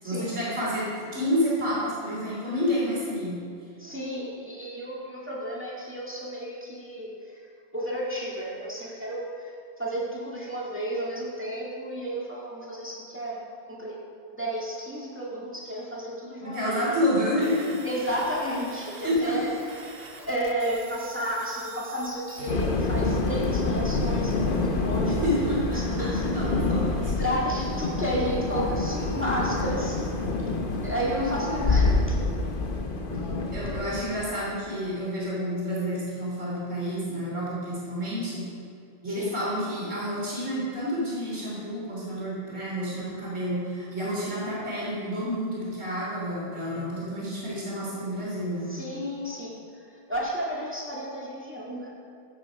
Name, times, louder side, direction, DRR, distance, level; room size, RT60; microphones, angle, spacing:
voice 1, 0.0-3.4 16.4-17.8 19.0-19.4 25.0-27.1 31.2-32.0 33.5-38.4 39.0-48.7, equal, 70° right, -7 dB, 3.9 m, -29 dB
voice 2, 3.8-7.5 7.7-13.4 13.7-14.0 14.3-16.9 17.8-26.6 27.0-30.1 30.8-32.2 39.0-39.3 48.7-51.9, equal, 10° right, -5 dB, 2.2 m, -32 dB
sound 1, 17.4-22.5, right 4 dB, 50° right, 1.1 m, -45 dB
sound 2, 22.5-34.0, left 3 dB, 45° left, 1.0 m, -27 dB
15.0 x 8.0 x 5.0 m, 2.4 s
omnidirectional pair, 1.3 m